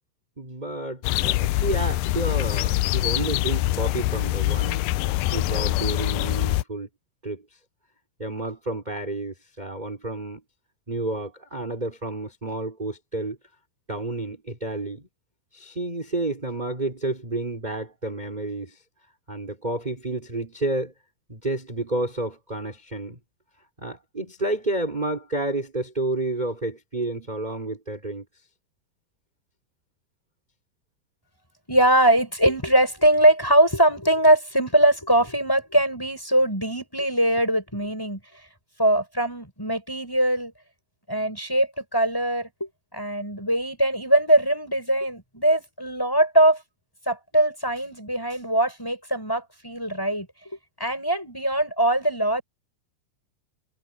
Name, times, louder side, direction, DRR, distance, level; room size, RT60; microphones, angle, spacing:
voice 1, 0.4-4.8 5.2-6.9 7.2-7.4 8.2-10.4 10.9-13.4 13.9-15.1 15.5-18.8 19.3-20.9 21.3-23.2 23.8-28.2, right 2 dB, 10° right, 4.7 m, -30 dB
sound 1, 1.0-6.6, left 17 dB, 80° left, 2.0 m, -24 dB
voice 2, 31.7-38.2 38.8-40.5 41.1-46.6 47.1-50.3 50.8-52.4, right 1 dB, 5° left, 6.5 m, -21 dB
omnidirectional pair, 4.3 m